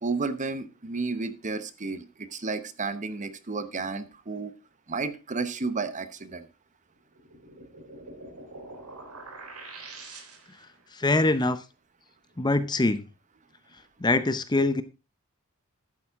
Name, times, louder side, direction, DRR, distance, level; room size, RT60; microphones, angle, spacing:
voice 1, 0.0-4.5 4.9-6.5, right 4 dB, 35° right, 1.0 m, -32 dB
sound 1, 7.1-10.7, right 2 dB, 80° right, 3.7 m, -44 dB
voice 2, 10.9-11.6 12.4-13.0 14.0-14.8, left 2 dB, 20° left, 0.7 m, -23 dB
11.5 x 9.2 x 3.6 m
head